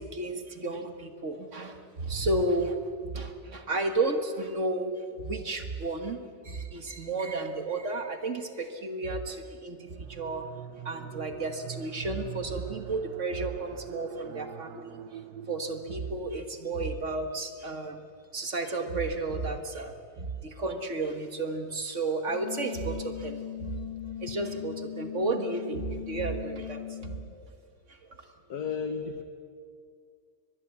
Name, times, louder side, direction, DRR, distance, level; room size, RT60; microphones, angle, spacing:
voice 1, 0.0-2.8 3.1-10.4 10.8-15.0 15.5-18.0 18.3-23.7 24.2-27.5 27.9-28.3, right 2 dB, 50° right, 7 dB, 1.8 m, -32 dB
sound 1, 9.9-16.8, right 9 dB, 80° right, 1.3 m, -44 dB
sound 2, 22.3-27.2, left 11 dB, 5° right, 4.7 m, -39 dB
voice 2, 28.5-29.2, left 6 dB, 80° left, 7 dB, 1.7 m, -33 dB
23.5 x 20.5 x 8.3 m, 2.2 s
omnidirectional pair, 1.7 m